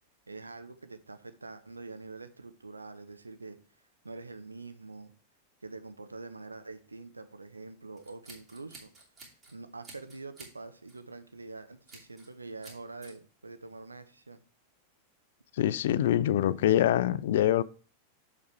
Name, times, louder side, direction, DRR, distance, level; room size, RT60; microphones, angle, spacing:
voice 1, 0.3-3.6 4.0-5.1 5.6-8.9 9.5-14.4, right 3 dB, 80° right, 0.7 m, -45 dB
Scissors, 8.0-9.5 9.8-10.6 10.9-11.1 11.9-12.3 12.6-13.1, right 3 dB, 25° right, 2.8 m, -51 dB
voice 2, 15.6-17.6, left 11 dB, 55° left, 0.4 m, -24 dB
6.9 x 5.2 x 4.6 m
figure-of-eight pair, 90°, 0 cm